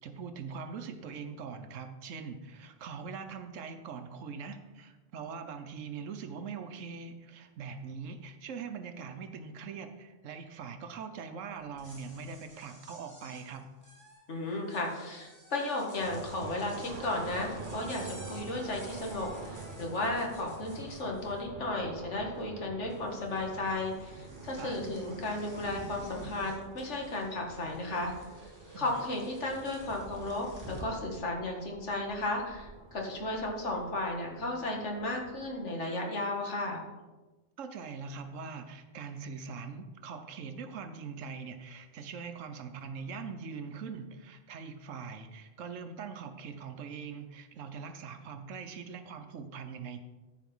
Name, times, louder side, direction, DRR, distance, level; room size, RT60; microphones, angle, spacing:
voice 1, 0.0-13.7 24.6-24.8 28.7-29.0 37.6-50.0, right 5 dB, 85° right, 8 dB, 1.1 m, -42 dB
sound 1, 11.6-21.6 21.9-22.6 22.9-31.0, equal, 15° right, 2.6 m, -50 dB
voice 2, 14.3-28.1 28.8-36.8, left 2 dB, 70° left, 0 dB, 2.1 m, -34 dB
sound 2, 16.0-35.6, right 4 dB, 45° right, 1.0 m, -48 dB
14.0 x 4.9 x 5.4 m, 1.2 s
omnidirectional pair, 1.3 m